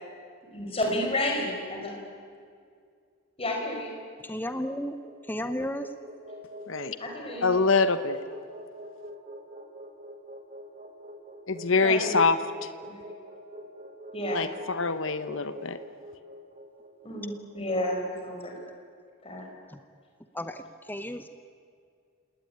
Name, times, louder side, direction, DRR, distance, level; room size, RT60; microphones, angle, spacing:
voice 1, 0.5-1.9 3.4-3.9 7.0-7.5 11.8-12.2 12.9-13.0 14.1-14.4 17.0-18.5 19.2-19.5, left 1 dB, 25° left, 1 dB, 5.2 m, -31 dB
voice 2, 4.3-4.9 5.3-5.9 20.4-20.5 20.9-21.3, equal, 10° left, 9 dB, 0.8 m, -32 dB
sound 1, 4.8-18.9, equal, 30° right, 2.5 m, -45 dB
voice 3, 7.4-8.2 11.5-12.4 14.3-15.8, left 4 dB, 60° left, 11 dB, 1.1 m, -24 dB
28.5 x 19.0 x 9.6 m, 2.2 s
head